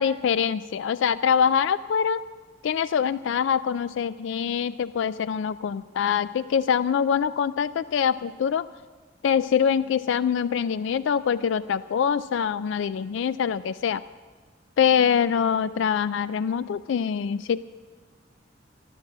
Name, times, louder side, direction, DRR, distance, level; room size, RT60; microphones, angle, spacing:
voice 1, 0.0-2.2 2.6-8.7 9.2-14.0 14.8-17.6, left 7 dB, 70° left, 15 dB, 0.3 m, -24 dB
13.0 x 13.0 x 7.4 m, 1.5 s
head